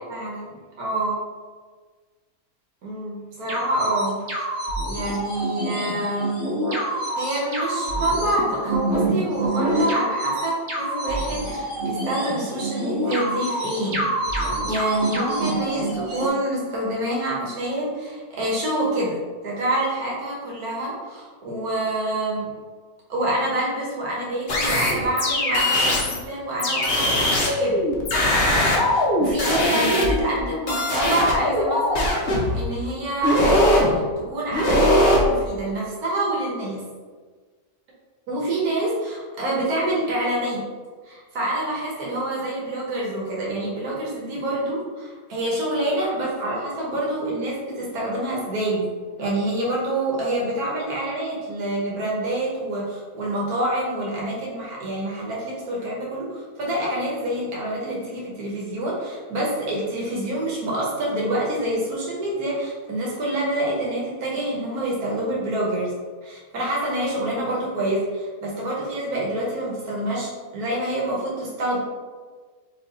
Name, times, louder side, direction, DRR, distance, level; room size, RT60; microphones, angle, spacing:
voice 1, 0.1-1.1 2.8-4.2 4.8-6.5 6.9-14.1 14.4-22.5 23.1-27.8 28.9-36.8 38.3-40.6 41.0-48.9 49.2-65.9 66.2-71.8, right 1 dB, 80° right, -4 dB, 1.6 m, -27 dB
sound 1, 3.5-16.3, right 1 dB, 55° right, 1.1 m, -27 dB
sound 2, 24.5-26.2 26.6-30.4 30.7-32.6 33.2-33.9 34.5-35.2, left 1 dB, 50° left, 0.9 m, -20 dB
4.7 x 2.8 x 4.0 m, 1.5 s
omnidirectional pair, 1.6 m